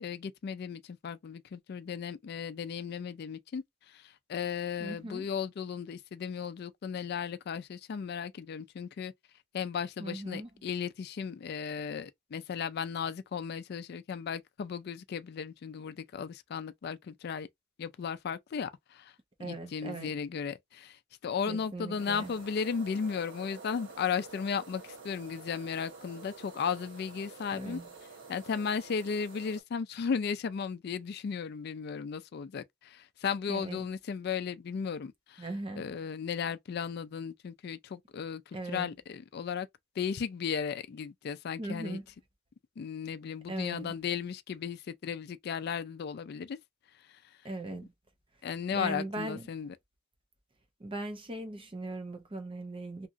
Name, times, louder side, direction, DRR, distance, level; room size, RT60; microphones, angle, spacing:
voice 1, 0.0-3.6 3.9-4.0 4.3-9.1 9.5-17.5 17.8-19.1 19.4-21.0 21.2-27.8 28.3-35.5 35.8-39.7 40.0-42.0 42.8-46.6 48.4-49.7, left 6 dB, 50° left, 0.3 m, -35 dB
voice 2, 4.8-5.3 10.0-10.5 19.4-20.1 21.5-22.3 27.5-27.9 33.5-33.9 35.4-35.9 38.5-38.9 41.6-42.1 43.5-44.0 47.4-47.9 48.7-49.5 50.8-53.1, right 2 dB, 25° right, 0.6 m, -39 dB
sound 1, 22.0-29.6, right 4 dB, 65° right, 1.2 m, -49 dB
2.8 x 2.4 x 2.5 m
head